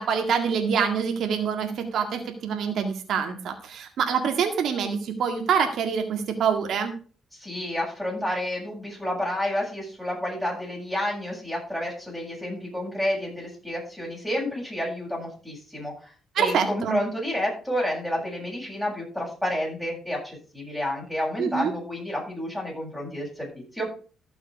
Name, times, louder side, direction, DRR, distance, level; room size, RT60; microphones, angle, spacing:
voice 1, 0.0-6.9 16.4-17.0 21.4-21.7, right 7 dB, 70° right, 4 dB, 1.9 m, -25 dB
voice 2, 7.3-23.9, left 1 dB, 5° left, -2 dB, 7.6 m, -30 dB
14.0 x 6.2 x 5.2 m, 0.39 s
cardioid pair, 90°, 0 cm